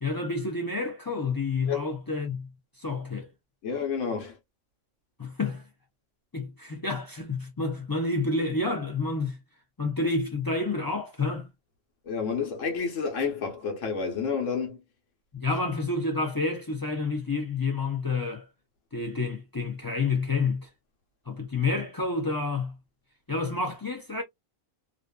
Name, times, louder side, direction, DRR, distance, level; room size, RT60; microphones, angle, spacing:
voice 1, 0.0-2.5 2.8-3.3 5.2-5.6 6.3-9.4 9.8-11.5 15.3-18.4 18.9-20.7 21.3-22.7 23.3-24.2, left 3 dB, 35° left, 0.3 m, -29 dB
voice 2, 3.6-4.4 12.1-14.8, left 6 dB, 85° left, 1.2 m, -30 dB
2.5 x 2.4 x 2.2 m
omnidirectional pair, 1.3 m